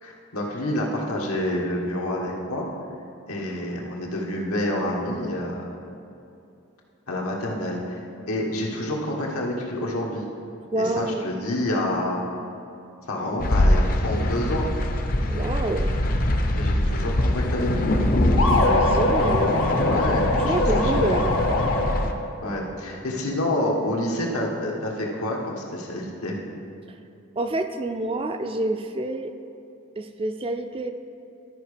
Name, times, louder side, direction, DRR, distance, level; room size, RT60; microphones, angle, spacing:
voice 1, 0.0-2.7 3.3-5.7 7.1-10.3 10.7-12.3 13.1-14.7 16.5-18.0 19.8-21.1 22.4-26.4, left 1 dB, 90° left, -1 dB, 1.5 m, -28 dB
voice 2, 10.7-11.3 15.3-16.0 18.4-19.6 20.3-21.3 26.9-27.0 27.4-29.3 30.0-30.9, right 2 dB, 25° right, 7 dB, 0.3 m, -28 dB
sound 1, 13.4-22.1, left 1 dB, 40° left, 0.6 m, -23 dB
sound 2, 18.4-22.3, left 2 dB, 70° left, 0.9 m, -23 dB
13.0 x 4.9 x 5.1 m, 2.6 s
head